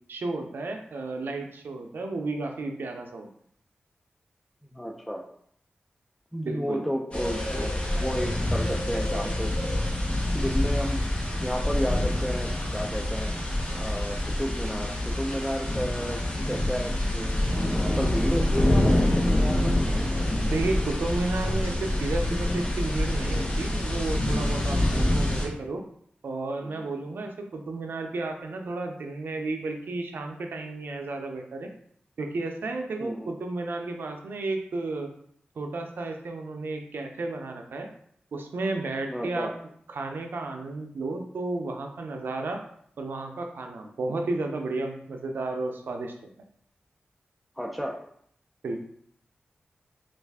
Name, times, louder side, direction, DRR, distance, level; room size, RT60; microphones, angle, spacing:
voice 1, 0.1-3.3 6.4-6.8 20.5-25.8 26.2-31.7 32.2-35.1 35.6-37.9 38.3-39.5 39.9-42.6 43.0-46.1 48.6-48.8, right 2 dB, 80° right, 4 dB, 0.4 m, -32 dB
voice 2, 4.7-5.2 6.3-7.7 8.0-9.6 10.3-11.1 11.4-13.3 13.7-17.5 17.7-19.8 26.6-26.9 33.0-33.3 39.1-39.5 47.6-48.0, equal, ahead, 0 dB, 0.4 m, -32 dB
sound 1, 7.1-25.5, left 1 dB, 35° left, 1.0 m, -26 dB
3.2 x 2.4 x 3.4 m, 0.65 s
cardioid pair, 65°, 4 cm